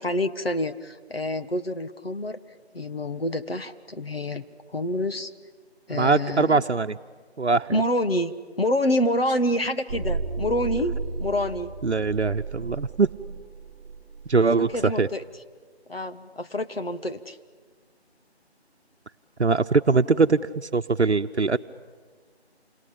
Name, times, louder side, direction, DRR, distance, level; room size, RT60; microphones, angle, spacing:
voice 1, 0.0-2.4 2.7-4.5 4.7-5.3 5.9-6.6 7.7-11.7 14.6-15.2 15.9-17.4, left 1 dB, 60° left, 8 dB, 1.5 m, -27 dB
voice 2, 5.9-7.0 7.4-7.7 11.8-13.1 14.3-15.1 19.4-20.4 20.7-21.6, right 4 dB, 80° right, 6 dB, 0.9 m, -21 dB
sound 1, 9.9-14.8, right 3 dB, ahead, 2.4 m, -34 dB
28.5 x 24.5 x 8.6 m, 1.5 s
figure-of-eight pair, 165°, 33 cm